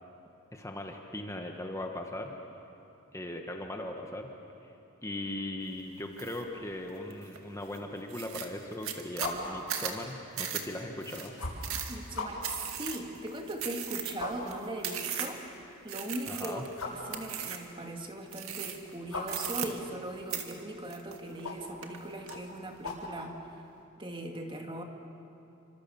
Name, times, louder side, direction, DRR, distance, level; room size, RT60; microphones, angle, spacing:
voice 1, 0.5-2.3 3.1-4.3 4.6-4.7 5.0-11.3 16.3-16.7, left 1 dB, 15° left, 3 dB, 1.5 m, -39 dB
sound 1, 6.2-6.4 6.9-7.4 7.7-7.8 8.1-15.5 15.9-16.7 17.1-17.7 18.3-18.9 19.2-20.0 20.3-21.5 21.8-22.4, right 9 dB, 70° right, 2.2 m, -37 dB
sound 2, 9.1-23.8, left 2 dB, 85° left, 7.7 m, -43 dB
voice 2, 11.9-15.4 15.8-16.6 16.9-23.4 24.0-24.8, right 1 dB, 25° right, 3 dB, 2.2 m, -39 dB
29.0 x 25.5 x 7.2 m, 2.7 s
head